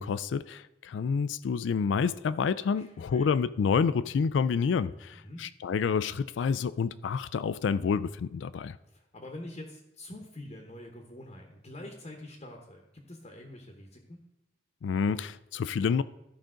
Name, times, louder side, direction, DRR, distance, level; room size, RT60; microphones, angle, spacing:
voice 1, 0.0-8.8 14.8-16.0, left 6 dB, 75° left, 0.3 m, -28 dB
voice 2, 2.8-3.3 5.1-5.5 8.9-14.2, left 1 dB, 35° left, 1.0 m, -45 dB
13.0 x 5.1 x 3.8 m
head